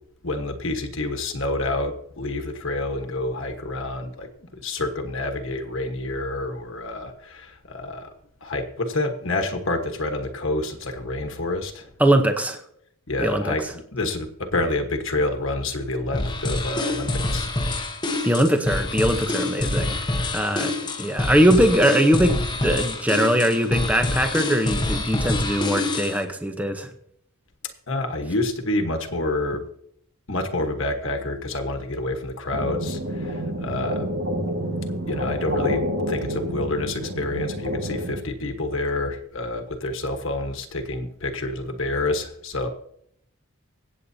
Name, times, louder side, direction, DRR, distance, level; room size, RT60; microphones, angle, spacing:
voice 1, 0.2-4.3 4.5-8.1 8.4-11.9 13.1-17.5 27.9-29.6 30.3-34.1 35.0-42.7, left 2 dB, 60° left, 5 dB, 1.3 m, -28 dB
voice 2, 12.0-12.6 13.2-13.5 18.2-20.0 20.3-20.7 21.0-26.9, equal, 5° right, 6 dB, 0.8 m, -21 dB
sound 1, 16.1-26.2, left 2 dB, 20° left, 1.0 m, -26 dB
sound 2, 32.5-38.2, equal, 60° right, 1.8 m, -28 dB
24.5 x 8.4 x 2.8 m, 0.71 s
head